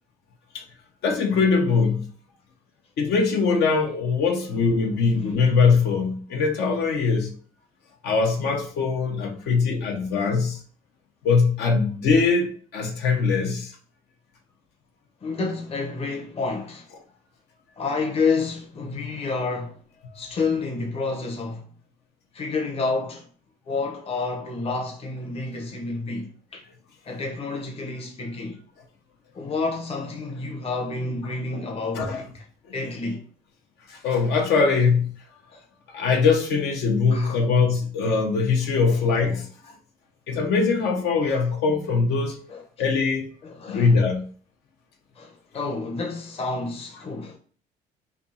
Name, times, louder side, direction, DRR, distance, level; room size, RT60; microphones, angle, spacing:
voice 1, 1.0-2.0 3.0-7.3 8.0-10.6 11.2-13.7 31.5-31.6 31.9-32.2 33.9-35.1 35.9-39.5 40.3-42.4 42.8-43.3 43.7-44.2, left 4 dB, 75° left, 1.1 m, -22 dB
voice 2, 4.5-5.4 15.2-16.9 17.8-19.8 20.1-21.7 22.3-23.3 23.7-26.6 27.0-28.6 29.3-32.4 32.7-33.2 35.5-35.6 37.1-37.4 38.9-39.1 41.2-41.4 42.5-42.6 43.4-44.0 45.2-47.4, left 3 dB, 35° left, 0.9 m, -29 dB
3.5 x 2.8 x 4.3 m
cardioid pair, 110°, 17 cm